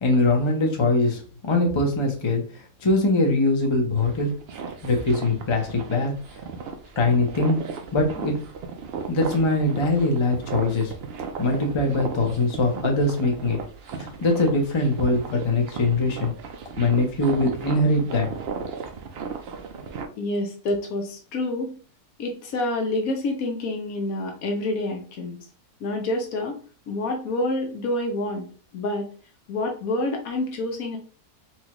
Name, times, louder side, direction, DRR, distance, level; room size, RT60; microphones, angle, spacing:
voice 1, 0.0-2.4 2.8-4.4 4.8-6.2 7.0-7.6 7.9-8.4 9.1-10.9 11.4-13.6 14.0-16.3 16.8-18.3, left 2 dB, 30° left, 1 dB, 0.5 m, -22 dB
sound 1, 3.9-20.1, right 5 dB, 75° right, 0.5 m, -36 dB
voice 2, 20.2-21.8 22.2-25.4 25.8-26.6 26.9-28.5 28.7-29.1 29.5-31.0, left 2 dB, 70° left, 3 dB, 1.2 m, -27 dB
4.3 x 2.3 x 2.9 m, 0.40 s
omnidirectional pair, 1.6 m